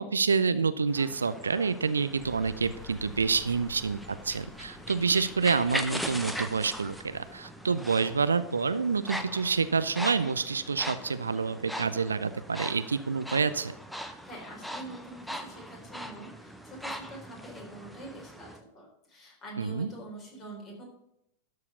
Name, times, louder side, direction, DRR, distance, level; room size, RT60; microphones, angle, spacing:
voice 1, 0.0-13.7 19.6-19.9, right 5 dB, 75° right, 13 dB, 0.5 m, -28 dB
sound 1, 0.9-18.6, equal, ahead, 0.8 m, -40 dB
sound 2, 2.2-7.4, left 7 dB, 40° left, 3.5 m, -51 dB
voice 2, 14.2-20.8, right 1 dB, 25° left, -1 dB, 3.8 m, -45 dB
12.5 x 4.8 x 6.9 m, 0.80 s
figure-of-eight pair, 90°, 0 cm